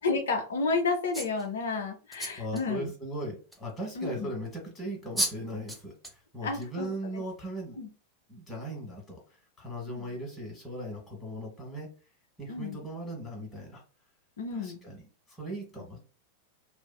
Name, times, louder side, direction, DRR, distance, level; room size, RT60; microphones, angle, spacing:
voice 1, 0.0-2.9 4.0-4.3 6.4-7.2 7.8-7.9 9.9-10.0 12.5-12.8 14.4-14.8, left 4 dB, 65° left, 2 dB, 0.4 m, -31 dB
sound 1, 1.1-1.5 2.1-2.6 3.5-3.6 4.8-4.9 5.2-5.4 5.7-6.2 6.6-6.9, right 1 dB, 5° right, 0.5 m, -33 dB
voice 2, 2.4-7.8 8.3-11.9 12.4-13.8 14.5-15.0 15.3-16.0, right 1 dB, 15° left, -1 dB, 1.2 m, -38 dB
2.5 x 2.3 x 2.2 m, 0.35 s
figure-of-eight pair, 90°, 0 cm